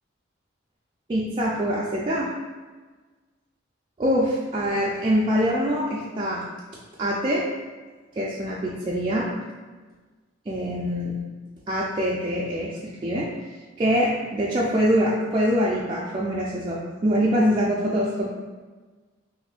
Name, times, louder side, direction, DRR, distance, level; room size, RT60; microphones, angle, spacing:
voice 1, 1.1-2.3 4.0-6.4 7.0-7.4 8.2-9.3 10.5-11.2 11.7-13.3 13.8-18.3, equal, 25° right, -6 dB, 0.3 m, -24 dB
2.6 x 2.5 x 3.5 m, 1.3 s
head